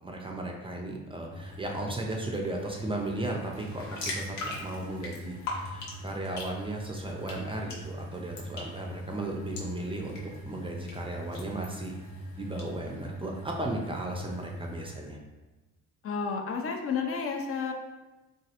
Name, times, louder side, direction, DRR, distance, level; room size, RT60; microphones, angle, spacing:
voice 1, 0.0-10.2 10.4-12.0 12.4-15.2, right 2 dB, 20° right, 0 dB, 0.4 m, -35 dB
sound 1, 1.3-15.0, equal, 25° left, 0.8 m, -43 dB
sound 2, 3.5-12.7, left 2 dB, 75° left, 0.8 m, -42 dB
voice 2, 16.0-17.7, left 5 dB, 50° left, 3 dB, 0.4 m, -31 dB
3.0 x 2.3 x 2.8 m, 1.1 s
cardioid pair, 90°, 30 cm